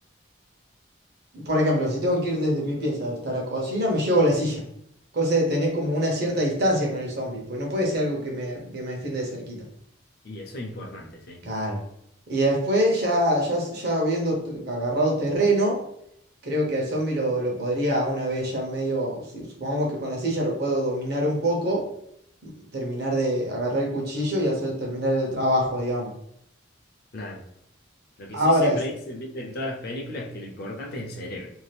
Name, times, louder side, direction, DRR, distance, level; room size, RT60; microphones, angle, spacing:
voice 1, 1.3-4.6 5.1-9.6 11.4-11.8 12.3-15.8 16.4-21.9 22.4-26.1 28.3-28.8, equal, 55° right, -1 dB, 0.9 m, -25 dB
voice 2, 10.2-11.4 27.1-27.4 28.2-31.5, left 1 dB, 55° left, 1 dB, 0.6 m, -35 dB
2.7 x 2.4 x 3.3 m, 0.73 s
head